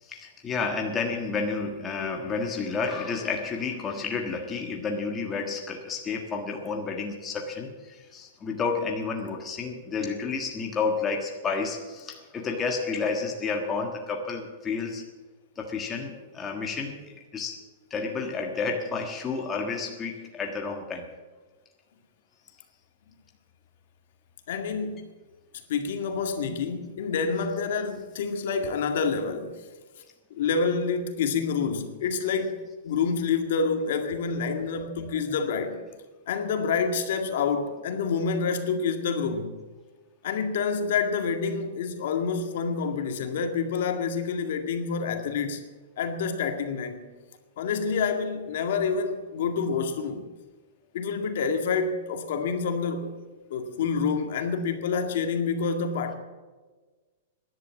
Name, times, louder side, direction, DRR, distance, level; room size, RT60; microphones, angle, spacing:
voice 1, 0.0-15.0 15.6-17.6 17.9-21.1 34.5-35.1, left 4 dB, 15° left, 1.4 m, -31 dB
voice 2, 24.5-25.1 25.7-29.5 30.3-35.8 36.3-39.5 40.2-45.6 46.0-47.1 47.6-50.3 50.9-53.1 53.5-56.1, left 5 dB, 60° left, 2.1 m, -28 dB
16.5 x 11.0 x 7.3 m
supercardioid pair, 165°, 0 cm